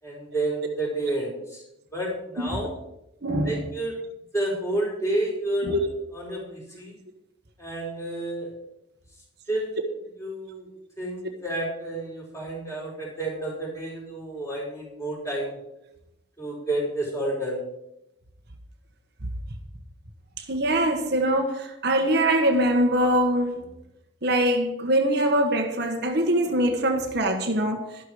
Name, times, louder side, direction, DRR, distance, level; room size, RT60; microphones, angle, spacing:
voice 1, 0.0-1.6 1.9-2.8 3.5-4.0 4.3-5.8 6.1-7.0 7.6-8.5 9.5-9.8 10.2-10.7 11.0-15.6 16.4-17.6, right 1 dB, 15° left, 5.1 m, -30 dB
voice 2, 3.2-3.7 5.6-5.9 20.5-23.6 24.2-28.0, right 1 dB, 55° right, 1.3 m, -23 dB
12.5 x 11.5 x 4.9 m
head